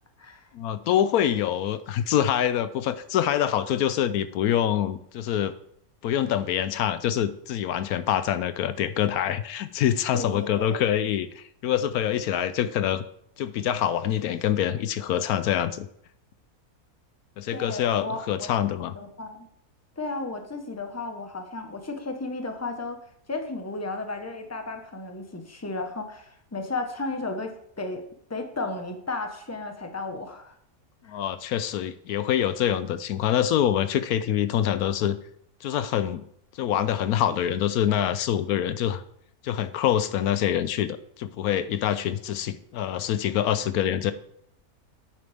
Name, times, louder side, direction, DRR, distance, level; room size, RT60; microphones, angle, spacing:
voice 1, 0.5-5.5 6.0-13.0 13.4-15.9 17.4-18.9 31.1-35.2 35.6-36.2 36.6-39.0 39.4-44.1, left 10 dB, 85° left, 13 dB, 1.1 m, -25 dB
voice 2, 10.1-10.8 17.5-18.5 18.9-19.5 20.0-28.0 28.3-30.6 31.0-31.1, left 3 dB, 10° left, 5 dB, 1.1 m, -34 dB
10.0 x 8.9 x 3.5 m, 0.71 s
omnidirectional pair, 1.6 m